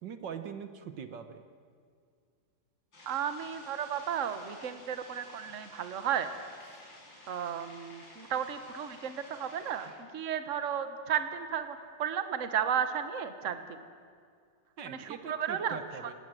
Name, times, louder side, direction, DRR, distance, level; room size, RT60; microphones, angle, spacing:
voice 1, 0.0-1.4 6.7-6.8 9.8-9.9 14.8-16.1, right 7 dB, 65° right, 9 dB, 1.7 m, -42 dB
sound 1, 2.9-9.9, left 1 dB, 65° left, 6.7 m, -53 dB
voice 2, 3.1-6.3 7.3-13.8 14.8-15.8, right 8 dB, 45° right, 9 dB, 1.5 m, -34 dB
28.5 x 19.0 x 7.7 m, 2.2 s
omnidirectional pair, 2.2 m